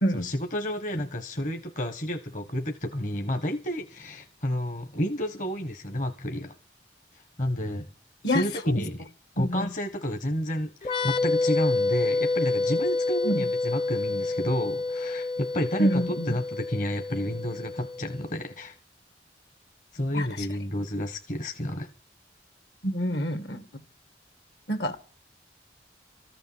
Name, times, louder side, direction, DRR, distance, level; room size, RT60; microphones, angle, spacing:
voice 1, 0.1-6.5 7.4-7.9 8.3-9.0 9.3-18.8 19.9-21.9, equal, 45° left, 1.4 m, -30 dB
voice 2, 9.4-9.7 13.2-13.4 15.8-16.3 20.1-20.3 22.8-23.6 24.7-25.0, equal, 70° left, 2.1 m, -26 dB
sound 1, 10.8-18.3, left 3 dB, 30° left, 0.8 m, -28 dB
14.5 x 6.7 x 9.7 m
head